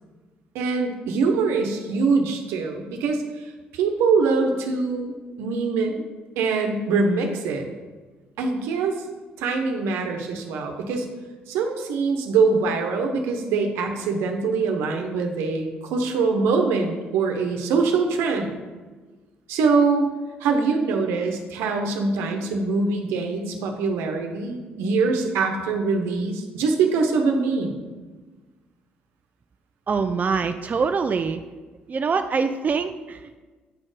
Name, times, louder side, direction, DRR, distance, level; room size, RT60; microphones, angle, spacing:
voice 1, 0.5-5.1 5.4-6.0 6.4-7.7 8.4-9.0 9.4-11.1 11.5-18.5 19.5-20.1 20.4-27.8, right 4 dB, 85° right, 4 dB, 1.0 m, -23 dB
voice 2, 29.9-31.4 31.9-33.4, right 5 dB, 40° right, 8 dB, 0.4 m, -24 dB
8.6 x 4.4 x 5.0 m, 1.3 s
supercardioid pair, 60°, 4 cm